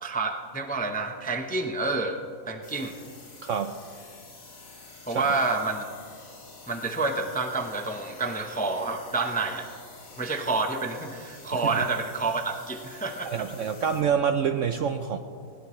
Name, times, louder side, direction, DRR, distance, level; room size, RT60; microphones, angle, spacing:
voice 1, 0.0-2.2 2.5-2.9 5.1-5.8 6.7-9.7 10.2-13.5, right 3 dB, 10° left, 4 dB, 0.5 m, -28 dB
sound 1, 2.6-14.0, left 3 dB, 55° left, 2.4 m, -48 dB
voice 2, 3.4-3.8 5.1-5.2 11.5-11.8 13.3-15.2, right 7 dB, 65° right, 8 dB, 0.8 m, -27 dB
20.5 x 17.5 x 3.2 m, 2.4 s
omnidirectional pair, 1.8 m